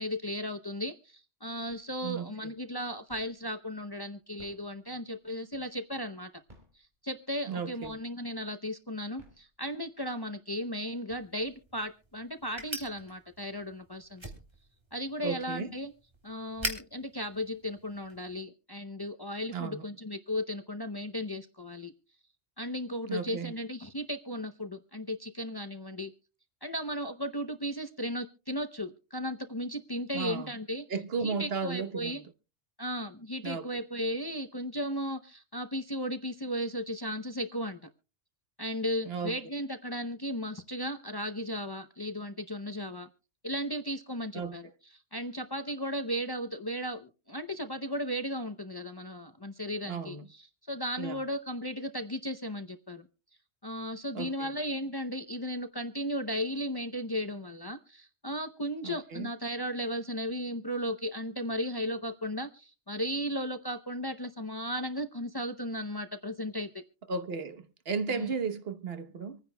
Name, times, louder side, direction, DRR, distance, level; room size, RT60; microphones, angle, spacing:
voice 1, 0.0-6.3 6.7-14.2 14.9-15.9 16.2-21.9 22.6-26.1 26.6-30.9 31.2-32.2 32.8-37.8 38.6-43.1 43.4-53.1 53.6-66.8 68.1-68.3, equal, 25° left, 0.7 m, -35 dB
sound 1, 1.7-2.2 2.5-3.6 4.2-6.0 6.4-7.5 7.8-8.4 9.0-10.0 10.5-10.6 10.9-11.8, equal, 45° right, 4.2 m, -59 dB
voice 2, 7.5-8.0 15.2-15.7 19.5-19.8 23.1-23.5 30.1-30.5 30.9-32.2 33.4-33.7 39.1-39.4 44.3-44.6 49.9-50.2 51.0-51.2 54.1-54.5 58.8-59.3 67.1-69.4, right 5 dB, 65° right, 1.2 m, -34 dB
sound 2, 11.2-18.3, right 1 dB, 25° right, 2.6 m, -43 dB
26.0 x 9.8 x 2.2 m
omnidirectional pair, 1.1 m